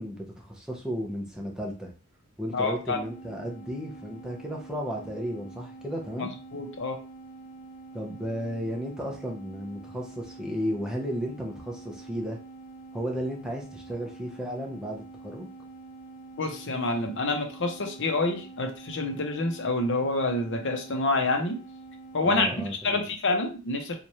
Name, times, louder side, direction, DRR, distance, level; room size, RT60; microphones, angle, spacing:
voice 1, 0.0-1.9 2.4-6.3 7.9-12.4 12.9-15.5 22.2-23.1, equal, 5° right, -1 dB, 0.7 m, -34 dB
voice 2, 2.5-3.0 6.2-7.0 16.4-21.6 22.1-22.5 22.8-24.0, left 2 dB, 60° left, 4 dB, 0.8 m, -27 dB
sound 1, 2.9-22.5, right 3 dB, 25° left, 0.3 m, -46 dB
3.1 x 2.4 x 4.1 m, 0.34 s
head